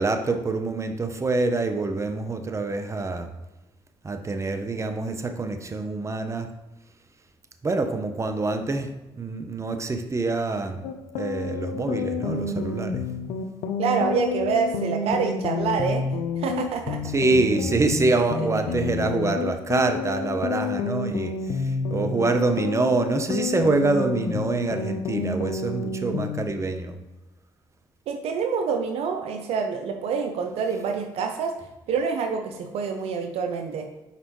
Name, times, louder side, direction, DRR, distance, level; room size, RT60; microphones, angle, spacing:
voice 1, 0.0-3.3 4.0-6.5 7.6-8.9 9.2-10.9 11.2-13.0 17.0-26.9, right 3 dB, 30° right, 7 dB, 0.8 m, -25 dB
sound 1, 10.8-26.5, left 4 dB, 80° left, 0.5 m, -29 dB
voice 2, 13.8-16.1 16.4-17.0 18.2-18.8 28.1-31.5 31.9-33.9, right 6 dB, 75° right, 5 dB, 0.7 m, -27 dB
6.7 x 4.8 x 3.1 m, 1.0 s
supercardioid pair, 60°, 11 cm